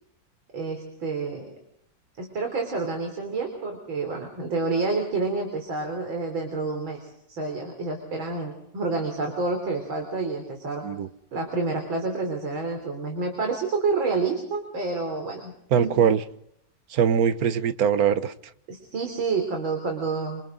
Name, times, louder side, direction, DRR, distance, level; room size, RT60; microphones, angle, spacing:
voice 1, 0.5-1.5 2.2-10.8 11.3-16.0 18.7-20.4, right 3 dB, 85° right, 4.4 m, -29 dB
voice 2, 15.7-16.2 16.9-18.3, right 8 dB, 55° right, 1.4 m, -22 dB
27.5 x 26.5 x 3.9 m
omnidirectional pair, 2.1 m